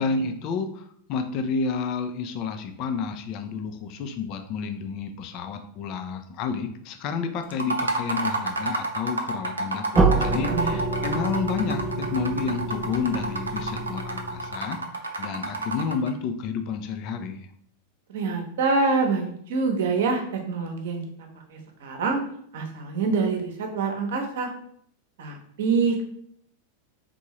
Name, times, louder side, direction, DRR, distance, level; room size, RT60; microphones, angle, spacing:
voice 1, 0.0-17.5, left 5 dB, 40° left, 6 dB, 0.5 m, -30 dB
sound 1, 7.5-16.1, right 2 dB, 75° right, 0.5 m, -30 dB
sound 2, 9.9-14.8, right 3 dB, 10° right, 0.4 m, -27 dB
voice 2, 18.1-21.0 21.5-22.2 22.5-24.5 25.2-26.0, right 4 dB, 55° right, 3 dB, 0.9 m, -25 dB
3.8 x 3.6 x 3.1 m, 0.66 s
figure-of-eight pair, 90°, 0 cm